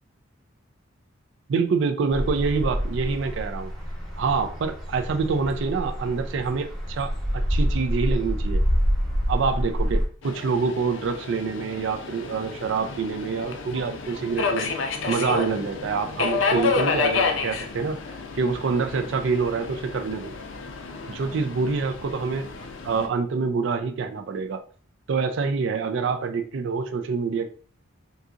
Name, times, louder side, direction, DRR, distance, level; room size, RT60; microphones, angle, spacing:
voice 1, 1.5-3.7 4.2-8.6 9.3-14.7 15.1-18.0 18.4-20.3 21.1-22.5 22.8-24.6 25.1-27.5, right 5 dB, 60° right, 7 dB, 0.3 m, -26 dB
sound 1, 2.1-10.1, equal, ahead, 0.9 m, -27 dB
Subway metro underground, 10.2-23.1, left 4 dB, 65° left, 0.5 m, -30 dB
3.7 x 2.8 x 2.4 m, 0.44 s
head